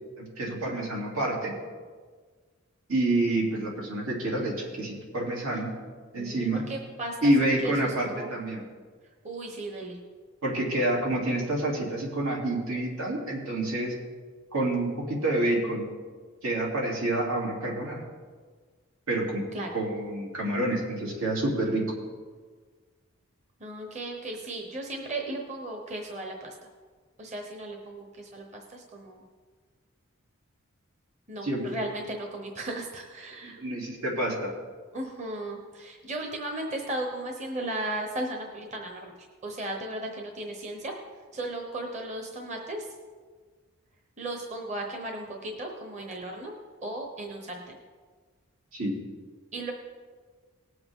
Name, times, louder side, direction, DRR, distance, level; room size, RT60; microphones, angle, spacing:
voice 1, 0.2-1.5 2.9-5.7 6.1-6.6 7.2-8.6 10.4-13.9 14.5-15.9 16.4-18.0 19.1-19.4 19.7-21.8 31.4-31.8 33.4-34.5 48.7-48.9, right 1 dB, 85° right, -3 dB, 3.3 m, -28 dB
voice 2, 6.2-8.3 9.2-10.0 19.5-19.7 23.6-26.5 27.2-29.2 31.3-33.6 34.9-39.1 39.4-40.9 41.3-42.8 44.2-46.5 46.8-47.8 49.5-49.7, right 1 dB, 35° right, 2 dB, 1.1 m, -36 dB
18.5 x 7.8 x 3.8 m, 1.5 s
head